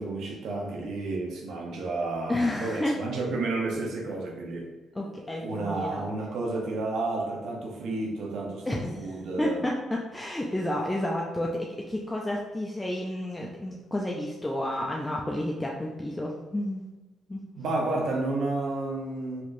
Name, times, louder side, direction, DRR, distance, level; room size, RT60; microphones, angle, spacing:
voice 1, 0.0-4.7 5.4-9.7 17.5-19.4, right 2 dB, 75° right, 0 dB, 0.9 m, -31 dB
voice 2, 2.3-2.9 4.9-6.0 8.7-16.8 17.3-17.5, left 1 dB, 10° left, -1 dB, 0.4 m, -31 dB
4.3 x 2.9 x 2.6 m, 1.1 s
cardioid pair, 90°, 0 cm